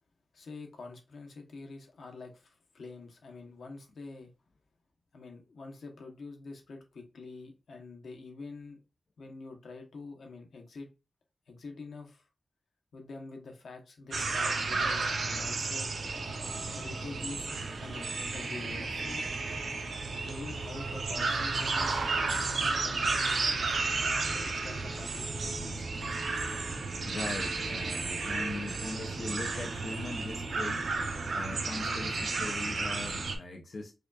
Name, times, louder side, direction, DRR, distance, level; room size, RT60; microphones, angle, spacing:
voice 1, 0.3-4.3 5.1-8.8 9.2-10.9 11.5-12.3 12.9-15.9 16.8-17.5 17.8-19.3 20.2-23.9 24.3-26.2, left 3 dB, 85° left, 1.0 m, -46 dB
sound 1, 14.1-33.4, right 3 dB, 80° right, 0.7 m, -32 dB
voice 2, 27.1-30.9 31.3-33.9, left 3 dB, 55° left, 0.5 m, -40 dB
4.9 x 2.4 x 2.3 m
wide cardioid pair, 140°, 0 cm